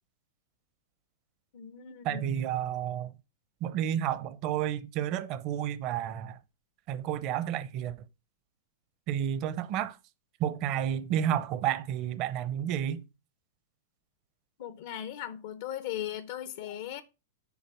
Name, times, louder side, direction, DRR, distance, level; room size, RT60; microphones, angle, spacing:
voice 1, 1.5-2.3 14.6-17.0, left 11 dB, 60° left, 0.8 m, -38 dB
voice 2, 2.0-3.1 3.6-6.4 6.9-7.9 9.1-10.0 10.4-13.0, right 10 dB, 40° right, 0.7 m, -31 dB
7.2 x 4.1 x 5.9 m
hypercardioid pair, 140°, 0 cm